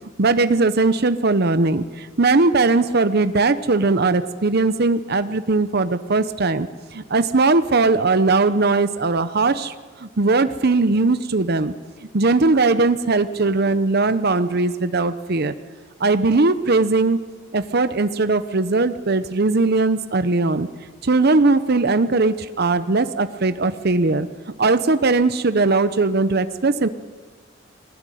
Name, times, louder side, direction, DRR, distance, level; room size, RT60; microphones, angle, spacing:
voice 1, 0.2-9.7 10.0-11.7 12.1-15.5 16.0-17.2 17.5-20.7 21.0-24.3 24.6-26.9, right 3 dB, 50° right, 11 dB, 0.8 m, -19 dB
20.5 x 19.0 x 9.3 m, 1.4 s
head